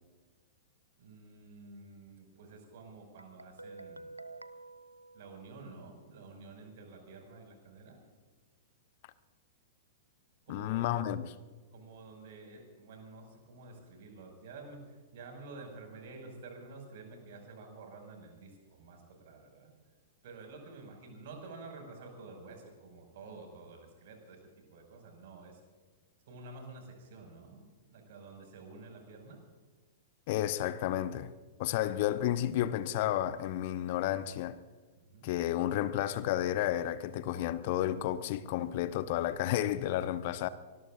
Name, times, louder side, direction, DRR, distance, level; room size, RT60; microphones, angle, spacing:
voice 1, 1.0-4.1 5.1-8.0 10.4-11.1 11.7-19.7 20.2-25.6 26.2-29.4 35.0-35.3, right 3 dB, 55° right, 5.8 m, -50 dB
Guitar, 3.2-6.0, right 2 dB, 90° right, 0.6 m, -50 dB
voice 2, 10.5-11.3 30.3-31.3 31.6-34.6 35.2-40.5, left 12 dB, 50° left, 0.8 m, -31 dB
24.0 x 20.5 x 2.6 m
figure-of-eight pair, 100°, 0 cm